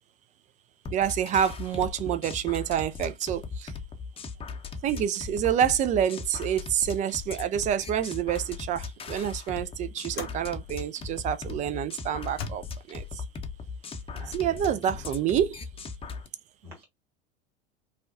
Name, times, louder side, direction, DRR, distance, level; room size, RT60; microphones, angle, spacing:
sound 1, 0.9-16.3, left 4 dB, 15° left, 0.7 m, -38 dB
voice 1, 0.9-3.7 4.8-13.2 14.3-15.6, right 9 dB, 25° right, 0.4 m, -28 dB
sound 2, 7.2-7.4 7.8-8.1 9.0-9.2 10.1-10.5 11.3-11.4 12.2-12.5, left 6 dB, 70° left, 1.0 m, -40 dB
voice 2, 14.1-15.0 16.6-16.8, left 2 dB, 80° right, 1.7 m, -46 dB
5.4 x 2.3 x 2.4 m
figure-of-eight pair, 75°, 31 cm